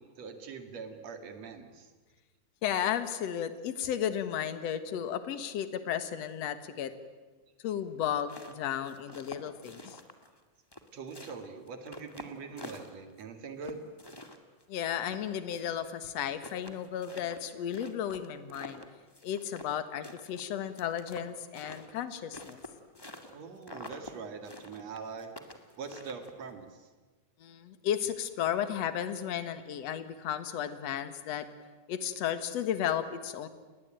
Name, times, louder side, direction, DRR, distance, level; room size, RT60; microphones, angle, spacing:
voice 1, 0.0-1.9 10.9-13.8 23.3-25.3 25.8-26.9, right 5 dB, 50° right, 7 dB, 3.2 m, -43 dB
voice 2, 2.6-6.9 7.6-10.0 14.7-18.8 19.2-22.6 27.4-31.5 31.9-33.5, left 9 dB, 55° left, 11 dB, 2.2 m, -34 dB
sound 1, 8.0-10.4 10.7-13.2 13.6-15.9 16.1-16.2 16.4-19.8 20.0-23.3 23.6-24.1 24.4-26.5, left 1 dB, 10° left, 1.0 m, -47 dB
29.5 x 20.5 x 9.1 m, 1.3 s
omnidirectional pair, 4.2 m